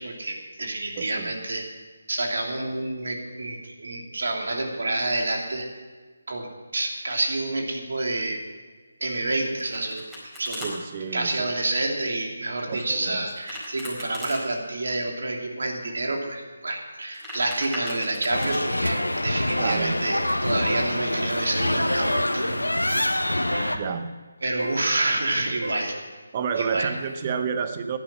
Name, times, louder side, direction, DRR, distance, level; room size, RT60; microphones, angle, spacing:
voice 1, 0.0-1.6 2.1-5.7 6.3-8.4 9.0-10.0 10.4-10.6 11.1-19.0 19.2-23.8 24.4-26.0 26.6-26.9, right 2 dB, 60° right, 1 dB, 2.9 m, -28 dB
voice 2, 1.0-1.4 10.6-11.6 12.7-13.3 19.6-20.0 23.7-24.1 26.3-28.0, right 6 dB, 30° right, 8 dB, 1.1 m, -30 dB
Domestic sounds home sounds, 9.3-10.7 13.3-14.4 16.9-18.6, left 1 dB, 5° right, 4.6 m, -38 dB
sound 1, 18.3-23.8, left 1 dB, 90° left, 1.1 m, -25 dB
sound 2, 18.3-18.6 18.9-19.2 19.5-19.7 20.1-20.4 20.7-20.9 22.0-22.3 23.5-23.8 24.6-24.8 25.6-25.9, right 1 dB, 80° right, 2.9 m, -35 dB
16.0 x 11.0 x 6.1 m, 1.4 s
figure-of-eight pair, 155°, 0 cm